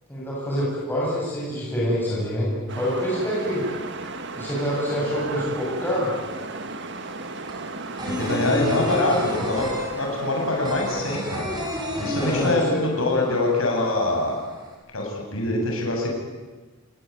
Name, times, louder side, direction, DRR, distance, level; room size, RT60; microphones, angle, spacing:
voice 1, 0.1-2.5 2.8-3.6 4.3-6.1 12.1-12.8, equal, 10° left, -7 dB, 7.7 m, -26 dB
sound 1, 2.7-10.7, right 3 dB, 55° right, 1.9 m, -35 dB
sound 2, 6.2-6.3 6.6-13.2 13.4-13.5 13.9-14.7, left 1 dB, 20° right, 6.2 m, -30 dB
voice 2, 8.1-11.5 12.0-14.3 14.9-16.1, left 2 dB, 65° left, 0 dB, 7.6 m, -24 dB
27.5 x 21.0 x 9.5 m, 1.3 s
head